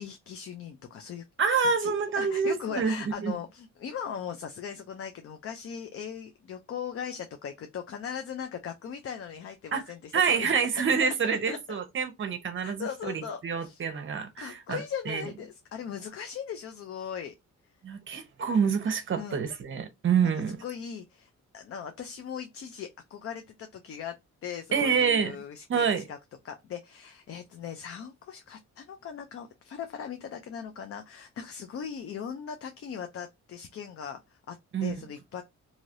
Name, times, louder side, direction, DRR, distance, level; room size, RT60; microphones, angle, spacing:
voice 1, 0.0-1.2 1.8-10.7 11.2-11.8 12.6-13.8 14.4-17.3 19.1-19.4 20.6-24.2 24.4-26.2 26.4-35.4, left 7 dB, 50° left, 0.4 m, -39 dB
voice 2, 1.4-3.3 9.7-9.8 10.1-15.2 17.8-20.6 24.7-25.3 25.7-26.0 34.7-35.0, right 6 dB, 40° right, 0.7 m, -27 dB
3.1 x 2.7 x 2.5 m
wide cardioid pair, 150°, 30 cm